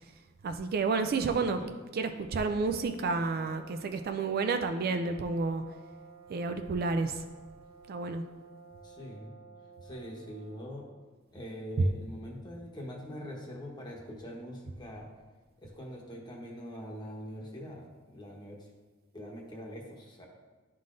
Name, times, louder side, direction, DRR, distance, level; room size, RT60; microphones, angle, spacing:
voice 1, 0.4-1.6 1.9-5.6 6.3-7.2 7.9-8.2 11.8-11.9, right 4 dB, 45° right, 7 dB, 0.3 m, -30 dB
sound 1, 2.1-11.0, right 5 dB, 25° right, 0.8 m, -53 dB
voice 2, 8.8-9.3 9.8-10.9 11.3-15.1 15.6-18.7 19.1-20.3, equal, 20° left, -1 dB, 1.0 m, -43 dB
11.0 x 3.8 x 2.5 m, 1.4 s
head